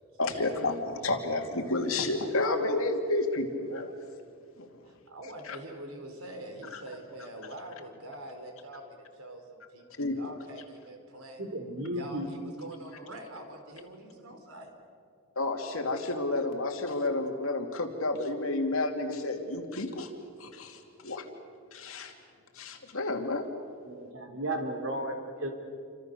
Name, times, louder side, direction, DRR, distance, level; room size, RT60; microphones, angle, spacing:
voice 1, 0.2-3.9 4.6-4.7 5.5-5.6 6.7-6.8 10.0-10.2 15.4-20.1 20.4-21.2 21.7-22.1 22.5-23.5, left 2 dB, 75° left, 3 dB, 2.7 m, -30 dB
voice 2, 4.9-11.4 11.9-14.7, right 1 dB, 90° right, 4 dB, 4.2 m, -45 dB
voice 3, 11.4-12.3 23.8-25.5, right 1 dB, 70° right, 3 dB, 3.8 m, -34 dB
28.5 x 25.5 x 6.8 m, 2.3 s
head